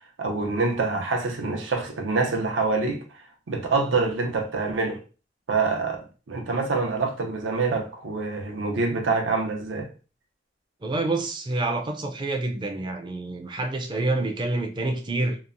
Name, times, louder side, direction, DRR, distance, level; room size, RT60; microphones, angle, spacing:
voice 1, 0.2-3.0 3.5-5.0 5.5-9.9, right 3 dB, 85° right, 0.6 m, -26 dB
voice 2, 10.8-15.4, right 2 dB, 25° right, 0.4 m, -27 dB
2.9 x 2.0 x 2.5 m
head